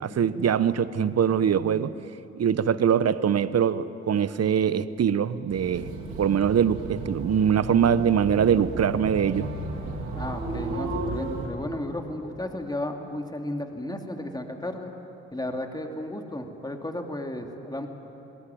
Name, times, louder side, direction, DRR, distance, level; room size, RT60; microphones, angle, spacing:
voice 1, 0.0-1.9 2.4-5.9 6.2-9.5, right 8 dB, 50° right, 15 dB, 1.1 m, -23 dB
sound 1, 5.5-11.5, right 2 dB, 90° right, 2.7 m, -34 dB
voice 2, 10.1-14.9 15.3-17.9, left 1 dB, 10° left, 3 dB, 3.2 m, -33 dB
29.5 x 20.0 x 9.3 m, 2.9 s
hypercardioid pair, 45°, 32 cm